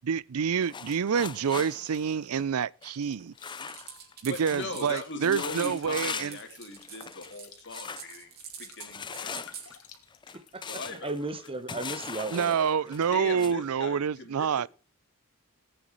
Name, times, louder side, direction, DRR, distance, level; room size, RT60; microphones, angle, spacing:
voice 1, 0.0-3.3 4.2-6.4 12.3-14.7, right 7 dB, 70° right, 0.5 m, -27 dB
sound 1, 0.6-4.1 4.5-4.7 5.0-6.5 6.8-7.4 7.7-8.1 8.8-13.5, left 6 dB, 20° left, 0.5 m, -40 dB
sound 2, 3.1-10.9, left 8 dB, 70° left, 2.3 m, -56 dB
sound 3, 3.5-9.7, right 8 dB, 45° right, 3.7 m, -45 dB
voice 2, 4.3-8.3 8.6-9.5 10.7-11.1 13.1-14.7, left 2 dB, 55° left, 3.1 m, -39 dB
voice 3, 10.3-12.9, right 2 dB, 25° right, 1.1 m, -37 dB
18.5 x 9.1 x 3.1 m
head